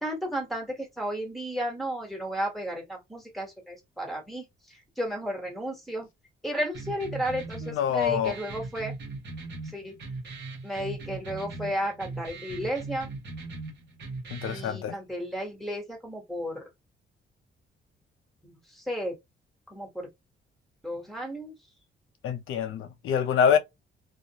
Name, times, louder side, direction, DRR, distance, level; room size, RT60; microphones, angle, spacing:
voice 1, 0.0-6.1 6.4-8.9 9.6-9.9 10.6-13.1 14.5-16.6 18.4-19.2 19.7-20.1 20.8-21.5, equal, ahead, 1.2 m, -33 dB
sound 1, 6.7-14.7, right 3 dB, 60° right, 1.0 m, -39 dB
voice 2, 7.6-8.3 14.3-15.0 22.2-23.6, left 7 dB, 85° left, 0.6 m, -25 dB
2.5 x 2.0 x 2.8 m
cardioid pair, 95°, 21 cm